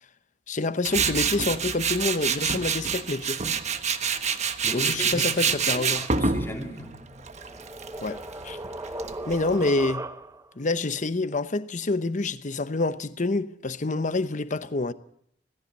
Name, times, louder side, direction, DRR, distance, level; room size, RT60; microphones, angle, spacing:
voice 1, 0.5-3.4 4.7-6.0 8.0-8.6 9.3-10.1 10.6-14.9, left 3 dB, 45° left, 0.9 m, -27 dB
Tools, 0.8-9.7, right 6 dB, 40° right, 1.2 m, -27 dB
voice 2, 4.6-7.1, equal, 15° left, 3.0 m, -37 dB
sound 1, 6.8-10.6, right 2 dB, 20° right, 0.8 m, -38 dB
17.5 x 16.0 x 9.5 m
head